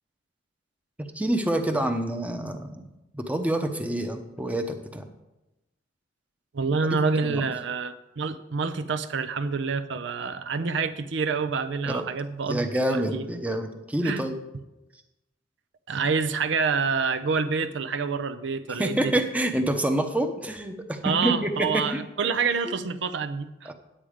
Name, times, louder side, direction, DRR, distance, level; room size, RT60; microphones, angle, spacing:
voice 1, 1.1-5.0 6.9-7.5 11.9-12.1 12.5-14.3 18.8-22.0 22.7-22.8 23.7-23.8, right 1 dB, 10° right, 5 dB, 0.8 m, -27 dB
voice 2, 6.5-13.3 14.0-14.2 15.9-19.2 21.0-23.7, right 5 dB, 70° right, 10 dB, 0.6 m, -27 dB
9.1 x 8.8 x 5.0 m, 0.97 s
head